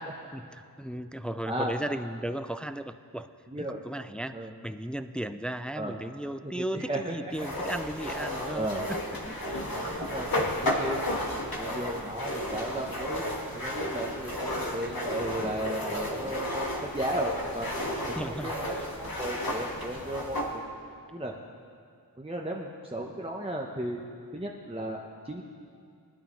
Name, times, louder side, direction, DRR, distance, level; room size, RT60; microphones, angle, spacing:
voice 1, 0.3-3.3 3.6-10.1 16.0-16.4 18.0-19.0, right 1 dB, 5° left, 11 dB, 0.3 m, -36 dB
voice 2, 3.5-3.8 4.3-4.5 5.7-5.9 6.4-7.1 8.5-8.8 10.0-10.3 10.6-11.0 11.6-13.2 13.5-17.7 18.1-20.6 21.1-21.3 22.2-24.0 24.3-25.4, right 1 dB, 15° right, -1 dB, 0.9 m, -35 dB
sound 1, 7.3-20.5, left 1 dB, 60° left, 1.7 m, -33 dB
19.0 x 12.0 x 3.2 m, 2.3 s
wide cardioid pair, 65°, 41 cm